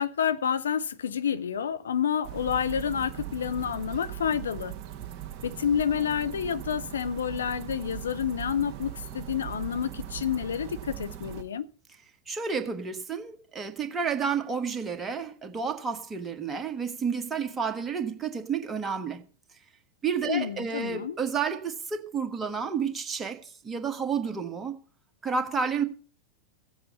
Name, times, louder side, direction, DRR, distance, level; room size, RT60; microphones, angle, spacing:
voice 1, 0.0-4.8 5.4-11.7 20.3-21.2, left 8 dB, 65° left, 0.6 m, -29 dB
sound 1, 2.2-11.4, right 11 dB, 40° right, 1.8 m, -39 dB
voice 2, 12.3-19.2 20.0-24.8 25.2-25.8, right 6 dB, 15° right, 1.5 m, -30 dB
16.0 x 7.8 x 5.5 m
figure-of-eight pair, 90°, 0 cm